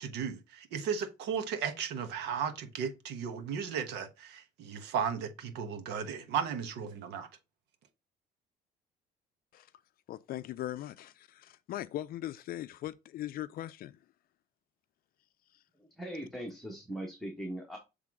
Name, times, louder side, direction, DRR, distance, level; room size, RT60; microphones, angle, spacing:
voice 1, 0.0-7.3, right 7 dB, 85° right, 1.2 m, -35 dB
voice 2, 10.1-14.0, left 13 dB, 60° left, 0.4 m, -40 dB
voice 3, 15.7-17.8, right 1 dB, ahead, 1.4 m, -40 dB
7.7 x 3.5 x 3.6 m
cardioid pair, 110°, 17 cm